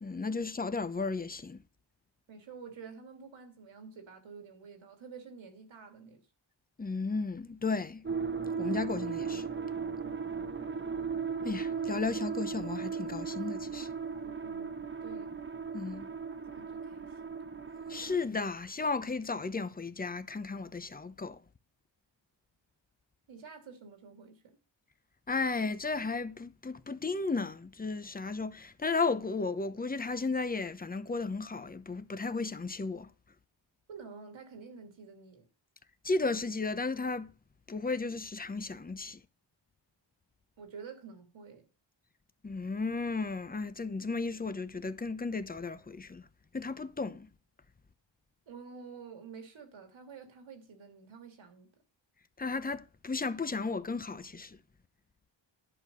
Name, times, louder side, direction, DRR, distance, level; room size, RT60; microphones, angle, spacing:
voice 1, 0.0-1.6 6.8-8.0 8.6-9.5 11.4-13.9 15.7-16.1 17.9-21.4 25.3-33.1 36.0-37.3 37.7-39.2 42.4-46.2 46.5-47.3 52.4-54.6, left 4 dB, 20° left, 0.9 m, -34 dB
voice 2, 2.3-6.2 10.0-10.3 14.1-15.4 16.3-17.3 23.3-24.6 33.9-35.5 40.6-41.7 48.5-51.7, right 5 dB, 80° right, 3.0 m, -49 dB
sound 1, 8.0-18.2, right 6 dB, 25° right, 1.1 m, -36 dB
11.0 x 6.5 x 5.5 m
cardioid pair, 90°, 46 cm